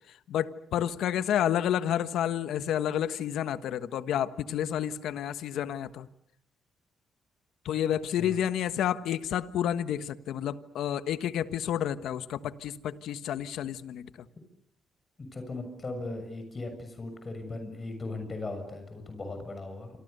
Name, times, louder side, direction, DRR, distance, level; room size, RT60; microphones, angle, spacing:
voice 1, 0.3-6.1 7.6-14.1, left 10 dB, 80° left, 12 dB, 1.3 m, -30 dB
voice 2, 15.3-19.9, left 2 dB, 30° left, 7 dB, 6.8 m, -38 dB
28.0 x 26.0 x 6.8 m, 0.72 s
cardioid pair, 90°, 0 cm